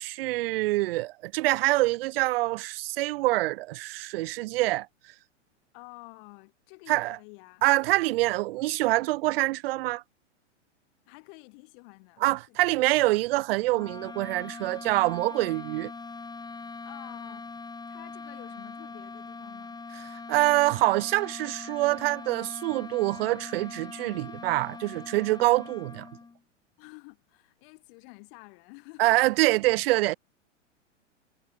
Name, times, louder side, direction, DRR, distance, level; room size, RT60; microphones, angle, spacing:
voice 1, 0.0-4.9 6.9-7.2 7.6-10.0 12.2-15.9 20.1-26.1 29.0-30.2, right 19 dB, 50° right, 0.9 m, -25 dB
voice 2, 5.7-7.6 11.1-12.8 16.8-17.5 17.9-19.8 26.8-29.5, left 33 dB, 50° left, 5.1 m, -50 dB
sound 1, 13.7-26.4, left 4 dB, 10° left, 5.8 m, -42 dB
hypercardioid pair, 110°, 37 cm